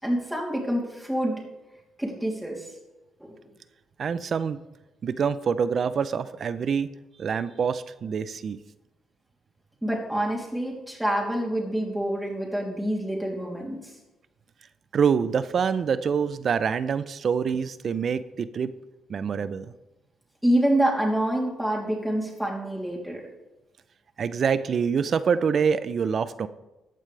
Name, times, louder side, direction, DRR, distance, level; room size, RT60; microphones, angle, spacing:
voice 1, 0.0-1.4 2.0-2.7 3.2-3.3 9.8-13.9 20.4-23.2, right 1 dB, 5° right, -3 dB, 3.2 m, -27 dB
voice 2, 4.0-4.6 5.0-6.9 7.2-8.6 14.9-18.7 19.1-19.7 24.2-26.5, right 6 dB, 50° right, 14 dB, 0.6 m, -25 dB
14.5 x 8.9 x 3.4 m, 1.0 s
cardioid pair, 90°, 0 cm